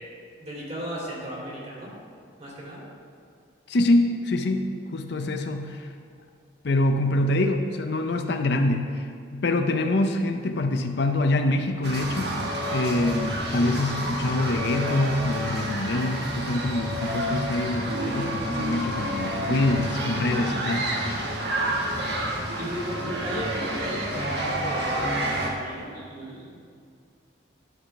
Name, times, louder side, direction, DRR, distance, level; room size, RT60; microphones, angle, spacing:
voice 1, 0.0-1.9 2.4-2.8 22.6-26.5, equal, 30° right, -5 dB, 2.7 m, -36 dB
voice 2, 3.7-5.9 6.6-12.4 12.7-21.2, left 2 dB, 55° left, 6 dB, 0.5 m, -25 dB
sound 1, 11.8-25.5, right 1 dB, 55° right, 1.4 m, -29 dB
11.0 x 4.9 x 5.8 m, 2.2 s
head